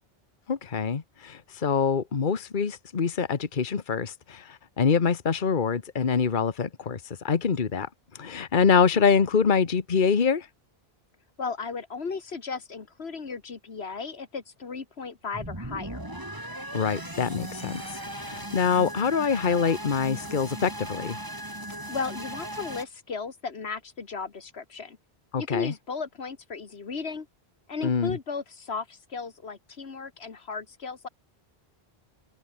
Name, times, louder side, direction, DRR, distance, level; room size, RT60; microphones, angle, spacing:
voice 1, 0.5-7.9 8.1-10.5 16.7-21.2 25.3-25.7 27.8-28.2, left 6 dB, 55° left, 1.3 m, -25 dB
voice 2, 11.4-16.0 21.7-25.0 25.4-27.3 27.7-31.1, left 5 dB, 85° left, 2.0 m, -35 dB
sound 1, 15.3-22.9, right 1 dB, 20° right, 3.9 m, -38 dB
omnidirectional pair, 1.0 m